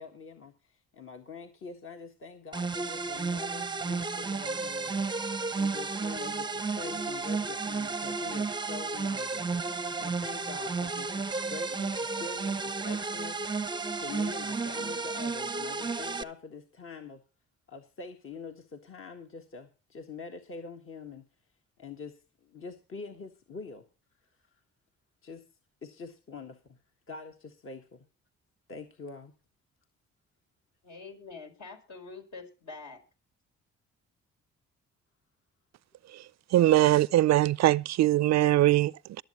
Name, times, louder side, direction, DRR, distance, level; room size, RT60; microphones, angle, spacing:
voice 1, 0.0-5.1 5.5-13.4 14.0-17.2 17.7-21.2 21.8-23.9 25.2-25.4 25.8-26.8 27.1-28.0 28.7-29.3, left 4 dB, 45° left, 1.6 m, -45 dB
sound 1, 2.5-16.2, right 4 dB, 15° right, 0.6 m, -32 dB
voice 2, 30.8-33.0, left 4 dB, 65° left, 4.4 m, -45 dB
voice 3, 36.5-39.2, right 14 dB, 60° right, 0.5 m, -22 dB
22.5 x 7.9 x 3.0 m
cardioid pair, 90°, 30 cm